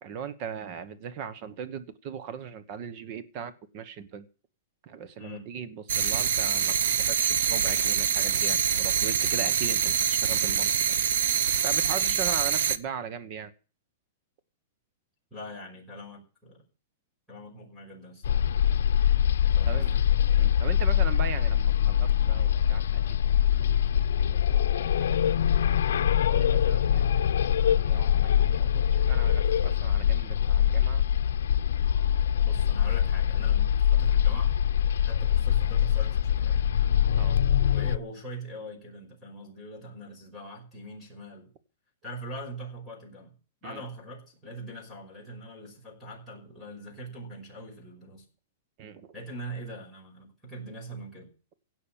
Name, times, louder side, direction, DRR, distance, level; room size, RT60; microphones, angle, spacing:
voice 1, 0.0-4.3 4.8-10.7 11.6-13.5 19.7-19.9 20.4-23.0 23.9-25.4 26.3-27.3 27.8-31.0 35.3-35.4 37.2-37.4 43.6-43.8 48.8-49.1, right 7 dB, 30° right, 12 dB, 1.2 m, -39 dB
sound 1, 5.9-12.8, right 8 dB, 70° right, 0.9 m, -25 dB
voice 2, 15.3-16.6 17.3-18.4 19.4-20.1 32.4-34.6 35.0-36.7 37.7-41.5 42.0-43.3 43.6-48.2 49.1-51.3, right 1 dB, ahead, -1 dB, 5.5 m, -42 dB
sound 2, 18.2-38.0, left 9 dB, 80° left, 0.7 m, -23 dB
17.0 x 6.2 x 8.9 m, 0.37 s
supercardioid pair, 170°, 0 cm